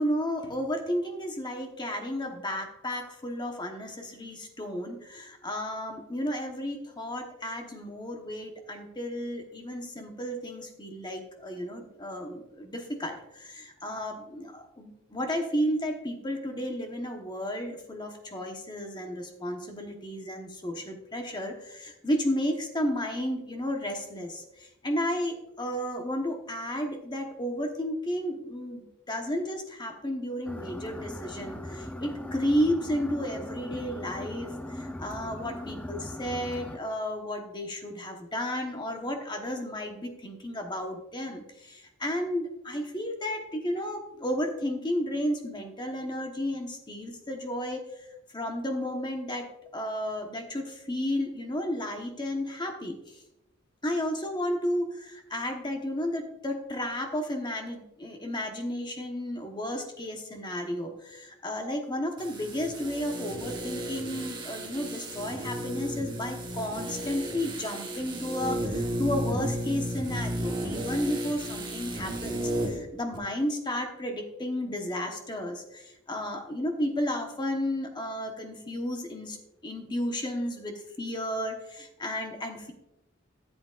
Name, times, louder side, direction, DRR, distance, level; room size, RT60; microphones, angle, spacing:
voice 1, 0.0-47.8 48.3-49.5 49.7-53.2 53.8-79.4 79.6-82.7, equal, 20° left, 3 dB, 1.1 m, -33 dB
sound 1, 30.5-36.8, left 1 dB, 5° left, 0.5 m, -39 dB
sound 2, 62.2-72.8 73.1-73.2, right 1 dB, 25° right, 1.2 m, -34 dB
13.5 x 7.9 x 2.5 m, 0.88 s
head